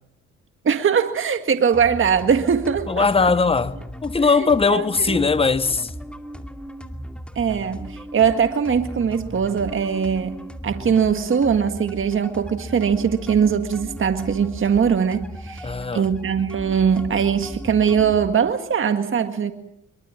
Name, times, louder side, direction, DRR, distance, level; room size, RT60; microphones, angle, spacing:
voice 1, 0.6-3.3 4.4-5.2 7.3-10.3 10.6-19.5, right 7 dB, 40° right, 1.8 m, -21 dB
sound 1, 1.7-18.3, equal, 5° left, 2.5 m, -37 dB
voice 2, 2.9-5.9 15.6-16.0, left 4 dB, 20° left, 1.1 m, -20 dB
24.0 x 23.5 x 7.5 m
cardioid pair, 90°, 30 cm